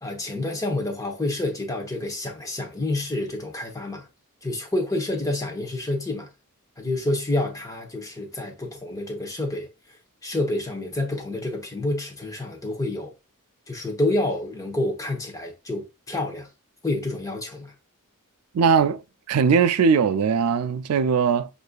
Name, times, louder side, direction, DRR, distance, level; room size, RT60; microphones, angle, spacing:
voice 1, 0.0-4.1 4.4-6.3 6.8-9.7 10.2-13.1 13.7-16.5 16.8-17.7, left 2 dB, 15° left, 0.9 m, -28 dB
voice 2, 18.5-19.0 19.3-21.5, right 6 dB, 75° right, 0.4 m, -20 dB
6.4 x 2.6 x 2.3 m
head